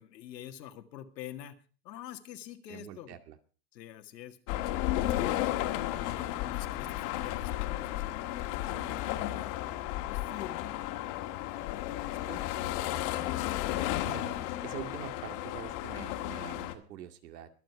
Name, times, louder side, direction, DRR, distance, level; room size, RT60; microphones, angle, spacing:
voice 1, 0.0-1.5 1.8-3.2 3.7-4.4 5.1-5.4 5.9-9.5 10.0-10.8 11.4-12.5, left 11 dB, 90° left, 7 dB, 2.1 m, -46 dB
voice 2, 2.7-3.4 5.9-6.3 8.7-9.0 12.3-12.7 14.0-14.4 14.6-17.5, right 10 dB, 75° right, 8 dB, 2.3 m, -45 dB
sound 1, 4.5-16.7, left 14 dB, 50° left, 1.8 m, -33 dB
22.5 x 7.9 x 4.7 m, 0.38 s
supercardioid pair, 145°, 48 cm